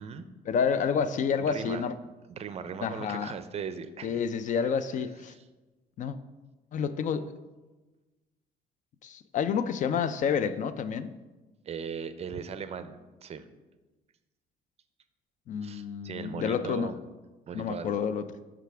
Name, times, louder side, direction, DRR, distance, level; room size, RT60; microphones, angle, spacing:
voice 1, 0.5-2.0 2.8-3.3 4.0-5.3 6.0-6.2 6.7-7.3 9.0-11.1 15.5-16.9 17.5-18.2, left 7 dB, 50° left, 13 dB, 0.4 m, -29 dB
voice 2, 1.4-1.8 2.3-4.8 5.3-5.4 11.6-13.4 15.6-17.0 17.5-17.9, right 6 dB, 40° right, 11 dB, 0.5 m, -39 dB
8.0 x 5.0 x 3.4 m, 1.2 s
cardioid pair, 110°, 17 cm